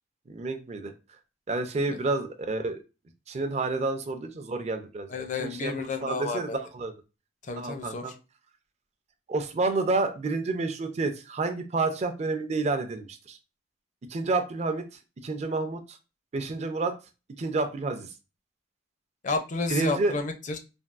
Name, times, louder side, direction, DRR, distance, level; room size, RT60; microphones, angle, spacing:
voice 1, 0.3-0.9 1.5-2.8 3.3-6.9 7.6-8.1 9.3-13.4 14.1-14.8 15.2-16.0 16.3-16.9 17.4-18.1 19.7-20.1, right 3 dB, 35° right, 7 dB, 0.4 m, -29 dB
voice 2, 5.1-6.6 7.5-8.0 19.2-20.6, left 3 dB, 45° left, 7 dB, 0.5 m, -31 dB
3.4 x 2.3 x 2.4 m, 0.30 s
head